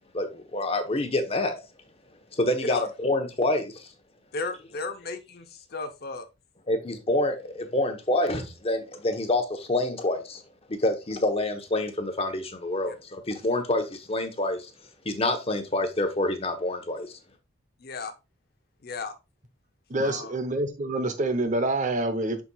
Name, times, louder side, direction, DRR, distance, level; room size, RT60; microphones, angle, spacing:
voice 1, 0.1-1.6 2.3-3.9 6.7-10.4 10.8-14.7 15.0-17.1, left 1 dB, 30° left, 1.1 m, -27 dB
voice 2, 4.3-6.3 12.9-13.0 17.8-18.1 18.8-19.1 20.0-20.4, left 3 dB, 50° left, 0.8 m, -34 dB
voice 3, 19.9-22.4, right 2 dB, 40° right, 0.9 m, -27 dB
6.9 x 6.1 x 2.3 m
head